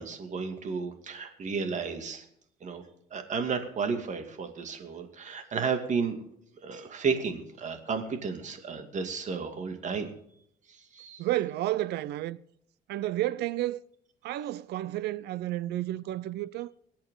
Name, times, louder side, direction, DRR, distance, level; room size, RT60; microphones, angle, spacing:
voice 1, 0.0-2.2 2.6-2.8 3.1-6.2 6.6-10.1 10.7-11.2, right 5 dB, 45° right, 2.5 m, -33 dB
voice 2, 11.2-12.4 12.9-13.8 14.2-16.7, right 15 dB, 75° right, 0.7 m, -31 dB
24.5 x 8.7 x 3.8 m
cardioid pair, 110°, 17 cm